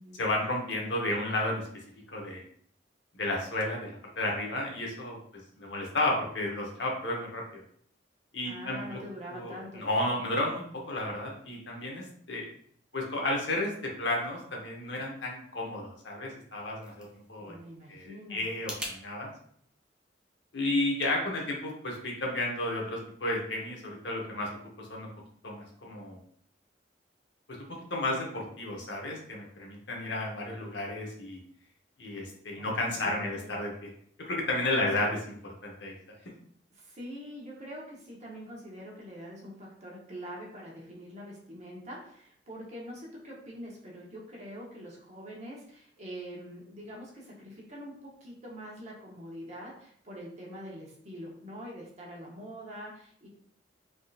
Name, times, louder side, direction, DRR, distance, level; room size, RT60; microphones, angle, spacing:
voice 1, 0.2-1.6 2.1-2.4 3.1-7.6 8.3-9.0 9.3-12.5 12.9-17.6 17.9-19.3 20.5-24.5 24.8-25.1 25.4-26.2 27.9-31.4 32.0-33.9 34.3-35.2 35.6-35.9, left 1 dB, 75° left, -1 dB, 0.8 m, -32 dB
voice 2, 8.4-9.9 17.4-18.5 32.5-33.5 34.8-35.1 36.7-53.3, equal, 40° right, -3 dB, 0.8 m, -44 dB
sound 1, 16.3-19.0, equal, 5° right, 0.4 m, -44 dB
3.5 x 2.7 x 2.4 m, 0.62 s
head